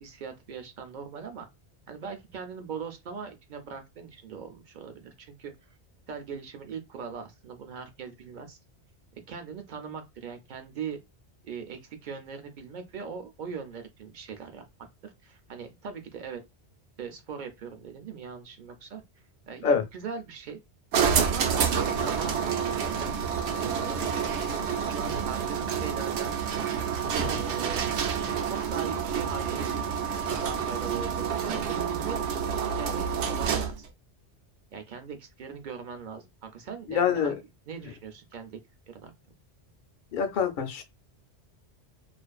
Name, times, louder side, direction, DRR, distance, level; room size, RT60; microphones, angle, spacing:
voice 1, 0.0-1.5 1.9-5.5 6.1-8.6 9.3-11.0 11.4-14.6 15.0-16.4 17.0-19.0 19.5-20.6 21.2-23.2 23.5-24.0 24.9-26.4 27.1-27.9 28.5-29.9 30.2-33.8 34.7-37.4 37.7-38.6 38.9-39.1, right 6 dB, 55° right, 0.5 m, -40 dB
sound 1, 20.9-33.8, right 7 dB, 85° right, 0.9 m, -28 dB
voice 2, 36.9-37.3 40.1-40.8, left 6 dB, 60° left, 0.6 m, -25 dB
2.5 x 2.4 x 2.3 m
omnidirectional pair, 1.1 m